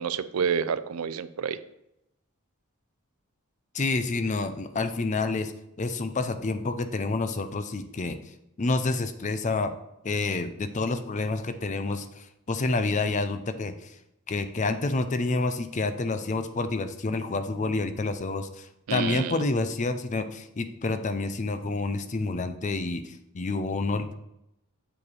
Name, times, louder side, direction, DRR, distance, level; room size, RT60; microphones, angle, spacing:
voice 1, 0.0-1.6 18.9-19.4, right 7 dB, 75° right, 14 dB, 0.4 m, -29 dB
voice 2, 3.7-5.5 5.8-8.2 8.6-9.7 10.0-13.9 14.3-24.1, left 3 dB, 35° left, 10 dB, 0.5 m, -28 dB
7.4 x 4.9 x 4.8 m, 0.83 s
head